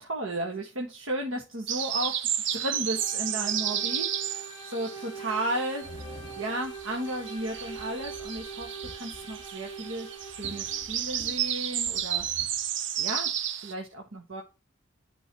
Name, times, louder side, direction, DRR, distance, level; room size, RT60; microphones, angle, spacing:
voice 1, 0.0-2.2 2.5-12.2 13.0-13.3 13.6-14.4, right 1 dB, 85° right, 1.5 m, -34 dB
sound 1, 1.7-6.0 6.3-13.7, right 10 dB, 60° right, 0.7 m, -32 dB
sound 2, 2.6-11.0, right 4 dB, 20° left, 1.3 m, -43 dB
sound 3, 5.8-12.6, left 2 dB, 35° right, 3.2 m, -50 dB
10.5 x 5.4 x 2.9 m
head